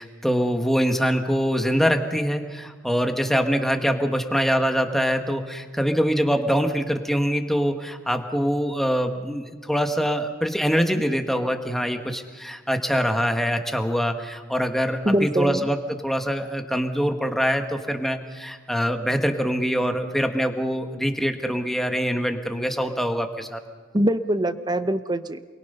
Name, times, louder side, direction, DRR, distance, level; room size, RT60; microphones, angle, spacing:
voice 1, 0.0-23.6, equal, ahead, 5 dB, 1.4 m, -24 dB
voice 2, 15.0-15.7 23.9-25.4, right 1 dB, 20° right, 11 dB, 0.8 m, -23 dB
29.0 x 22.5 x 5.6 m, 1.5 s
head